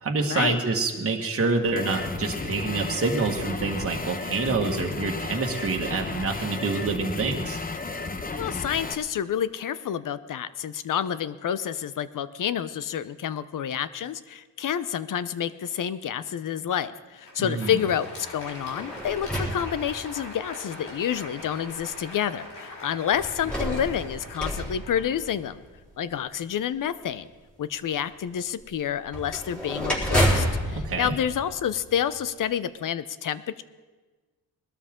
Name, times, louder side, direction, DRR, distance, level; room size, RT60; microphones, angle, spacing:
voice 1, 0.0-7.6 17.4-17.8 30.8-31.2, right 3 dB, 35° right, 1 dB, 1.7 m, -27 dB
sound 1, 1.8-9.0, left 3 dB, 25° left, 0.9 m, -33 dB
voice 2, 8.3-25.6 26.0-27.3 27.6-33.6, left 9 dB, 55° left, 15 dB, 0.7 m, -29 dB
Crowd, 17.0-26.0, left 1 dB, 85° left, 4.9 m, -42 dB
sound 2, 18.4-20.4 21.2-21.3 23.1-25.7 29.1-32.2, equal, 5° left, 4.0 m, -29 dB
20.5 x 13.0 x 3.7 m, 1.3 s
cardioid pair, 100°, 38 cm